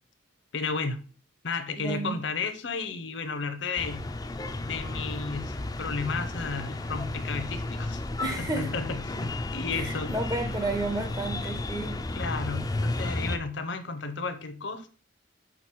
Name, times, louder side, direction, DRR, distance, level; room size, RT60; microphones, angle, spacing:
voice 1, 0.5-1.0 1.4-4.1 4.6-8.0 8.4-10.1 12.1-14.9, left 4 dB, 60° left, 0.7 m, -33 dB
voice 2, 1.8-2.2 8.2-8.7 9.7-12.0, right 2 dB, 20° right, 0.7 m, -32 dB
Ext Mumbai City Traffic Ambience, 3.8-13.4, left 2 dB, 20° left, 0.4 m, -33 dB
6.2 x 3.8 x 4.5 m
head